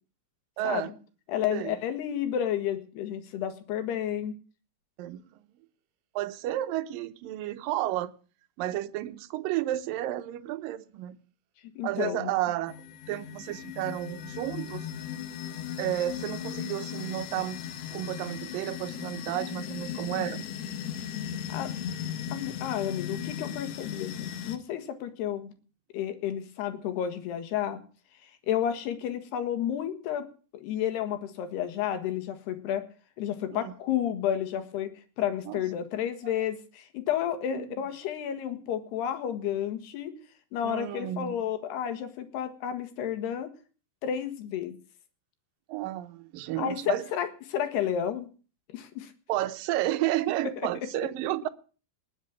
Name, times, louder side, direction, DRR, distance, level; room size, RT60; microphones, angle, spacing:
voice 1, 0.6-0.9 1.5-1.8 5.0-5.2 6.2-8.1 8.6-11.2 11.8-12.8 13.1-14.9 15.8-17.6 17.9-20.4 33.5-33.7 35.5-35.6 37.5-37.7 40.6-41.5 45.7-47.0 49.3-51.5, right 14 dB, 75° right, 2.3 m, -32 dB
voice 2, 1.3-4.3 11.8-12.3 21.5-21.7 22.3-25.5 25.9-27.8 28.5-30.3 30.6-32.8 33.2-34.9 35.2-40.1 40.5-43.5 44.0-44.8 46.6-48.3 48.7-49.1, left 10 dB, 80° left, 3.8 m, -31 dB
sound 1, 12.7-24.6, left 9 dB, 60° left, 1.8 m, -37 dB
20.0 x 7.5 x 8.6 m
omnidirectional pair, 4.7 m